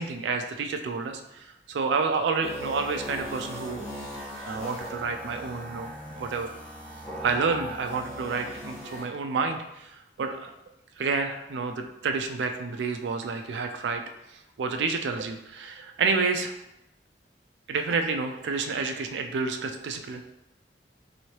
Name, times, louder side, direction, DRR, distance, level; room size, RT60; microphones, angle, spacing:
voice 1, 0.0-3.9 4.4-6.5 7.2-10.5 11.0-14.0 14.3-16.5 17.7-20.2, right 4 dB, 80° right, 6 dB, 0.4 m, -29 dB
sound 1, 2.4-9.0, equal, 5° left, 1.1 m, -39 dB
3.0 x 2.7 x 2.9 m, 0.86 s
head